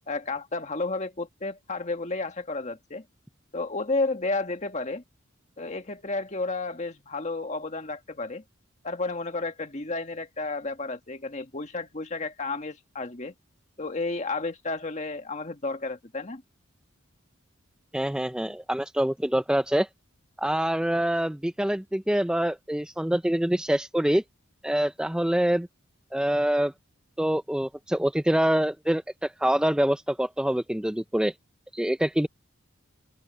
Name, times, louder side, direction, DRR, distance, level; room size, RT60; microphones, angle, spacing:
voice 1, 0.1-3.0 3.5-5.0 5.6-8.4 8.8-13.3 13.8-16.4, left 3 dB, 35° left, 1.7 m, -32 dB
voice 2, 17.9-19.9 20.4-24.2 24.6-25.7 26.1-26.7 27.2-31.3 31.7-32.3, right 1 dB, 5° right, 0.4 m, -25 dB
open air
head